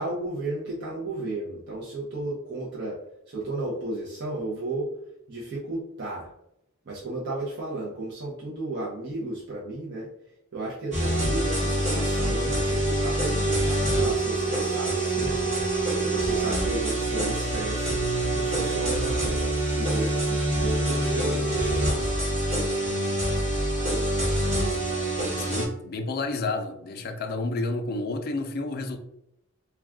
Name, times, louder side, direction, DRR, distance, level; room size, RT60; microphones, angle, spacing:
voice 1, 0.0-3.0 3.3-4.9 5.3-6.3 6.8-10.1 10.5-18.0 18.3-22.0, right 2 dB, 55° right, -6 dB, 0.6 m, -34 dB
sound 1, 10.9-25.7, right 1 dB, 35° right, 1.1 m, -25 dB
voice 2, 25.3-29.0, left 2 dB, 50° left, 6 dB, 0.4 m, -30 dB
2.3 x 2.2 x 3.5 m, 0.80 s
head